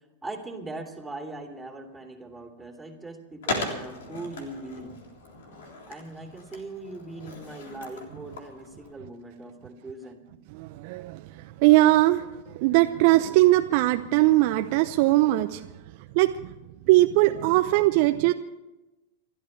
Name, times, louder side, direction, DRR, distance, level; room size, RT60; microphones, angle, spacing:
voice 1, 0.2-5.0 5.9-10.3 13.1-13.3, right 2 dB, 10° right, 1 dB, 3.2 m, -40 dB
Skateboard, 3.4-8.9, left 2 dB, 65° left, 3.5 m, -37 dB
voice 2, 10.5-12.3 12.5-15.6 16.1-16.5 16.9-18.3, right 17 dB, 50° right, 7 dB, 0.7 m, -20 dB
30.0 x 13.0 x 3.3 m, 1.0 s
figure-of-eight pair, 95°, 0 cm